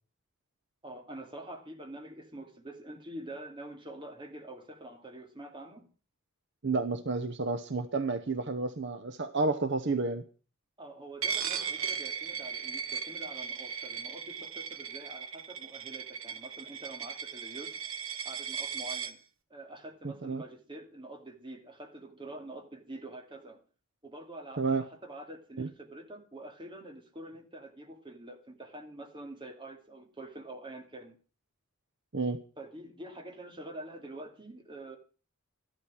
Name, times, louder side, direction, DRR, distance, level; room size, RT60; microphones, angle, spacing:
voice 1, 0.8-5.9 10.8-17.8 18.2-19.2 19.5-23.6 24.0-31.2 32.6-35.0, right 1 dB, 25° right, 3 dB, 2.5 m, -46 dB
voice 2, 6.6-10.2 20.0-20.4 24.6-24.8 25.6-25.7 32.1-32.4, right 3 dB, 60° right, 10 dB, 1.0 m, -31 dB
Coin (dropping), 11.2-19.1, right 7 dB, 75° right, 1.4 m, -37 dB
14.0 x 12.0 x 6.2 m, 0.38 s
head